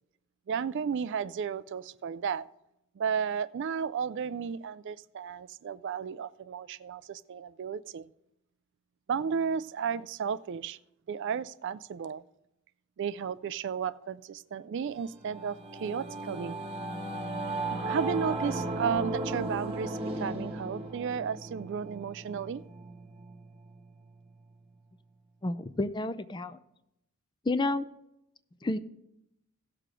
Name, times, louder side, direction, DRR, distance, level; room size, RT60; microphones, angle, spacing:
voice 1, 0.5-2.5 3.0-8.1 9.1-10.8 11.1-12.2 13.0-16.6 17.8-22.6, right 6 dB, 55° right, 0.3 m, -33 dB
Singing / Musical instrument, 15.0-24.7, right 2 dB, 25° right, 1.2 m, -36 dB
voice 2, 25.4-26.6 27.5-27.9 28.6-28.8, left 2 dB, 20° left, 0.4 m, -30 dB
16.5 x 6.6 x 3.7 m
head